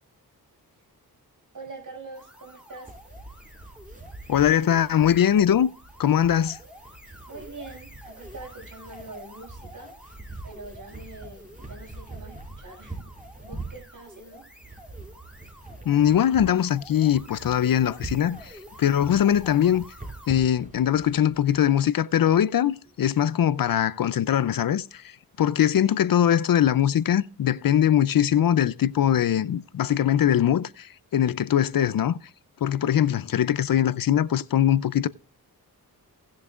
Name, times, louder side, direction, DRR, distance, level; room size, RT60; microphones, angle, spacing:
voice 1, 1.5-2.9 7.3-9.9 10.4-13.1 13.4-14.4, right 2 dB, 55° right, 6.3 m, -44 dB
sound 1, 2.1-20.4, equal, 5° right, 2.8 m, -49 dB
sound 2, 2.8-21.7, right 2 dB, 20° right, 4.9 m, -44 dB
voice 2, 4.3-5.7 6.0-6.6 15.9-19.8 20.3-25.1 25.4-32.2 32.6-35.1, left 10 dB, 65° left, 0.5 m, -22 dB
18.5 x 7.2 x 2.4 m
cardioid pair, 65°, 38 cm